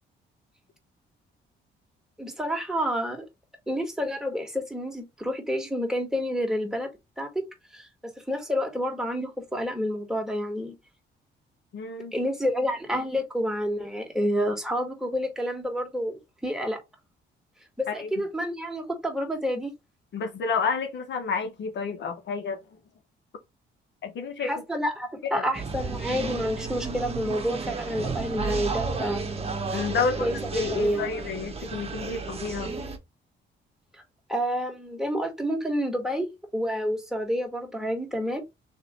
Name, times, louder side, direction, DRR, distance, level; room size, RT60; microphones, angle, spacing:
voice 1, 2.2-3.3 3.7-6.9 7.2-7.4 7.7-10.7 12.1-16.8 17.8-19.7 24.4-29.2 30.2-30.4 30.7-31.1 34.3-38.4, equal, 5° right, 1.9 m, -29 dB
voice 2, 11.7-12.1 17.9-18.1 20.1-22.6 24.0-24.6 25.3-25.5 29.7-30.3 30.5-32.7, left 5 dB, 65° left, 1.1 m, -30 dB
sound 1, 25.5-33.0, right 4 dB, 30° right, 1.1 m, -32 dB
3.6 x 3.1 x 4.3 m
cardioid pair, 90°, 20 cm